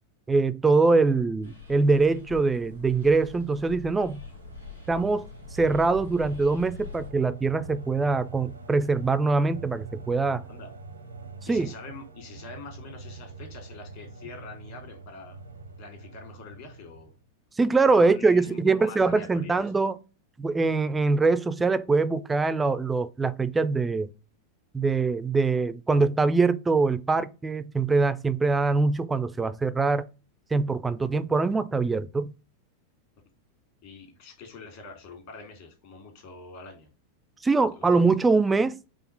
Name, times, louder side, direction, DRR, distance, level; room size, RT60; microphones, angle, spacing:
voice 1, 0.3-4.2 4.9-10.4 11.5-11.7 17.6-20.0 20.4-24.1 24.7-30.1 30.5-32.3 37.4-38.8, right 3 dB, 10° right, 0.3 m, -23 dB
sound 1, 1.4-7.1, left 7 dB, 90° left, 1.3 m, -44 dB
sound 2, 4.1-17.2, right 4 dB, 85° right, 0.7 m, -44 dB
voice 2, 11.5-15.4 15.8-17.1 17.9-19.6 30.9-31.1 33.8-36.9 37.7-37.9, left 4 dB, 50° left, 1.8 m, -45 dB
4.9 x 2.4 x 4.2 m
figure-of-eight pair, 90°, 0 cm